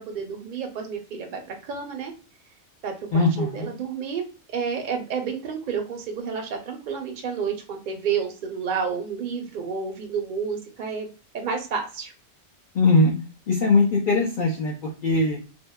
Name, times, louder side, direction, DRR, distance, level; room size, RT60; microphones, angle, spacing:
voice 1, 0.0-2.1 2.8-4.2 4.5-11.1 11.3-12.1, right 6 dB, 55° right, 3 dB, 0.6 m, -30 dB
voice 2, 3.1-3.7 12.7-13.1 13.5-14.7 15.0-15.4, left 3 dB, 55° left, -1 dB, 0.6 m, -20 dB
2.7 x 2.0 x 2.2 m, 0.35 s
omnidirectional pair, 1.2 m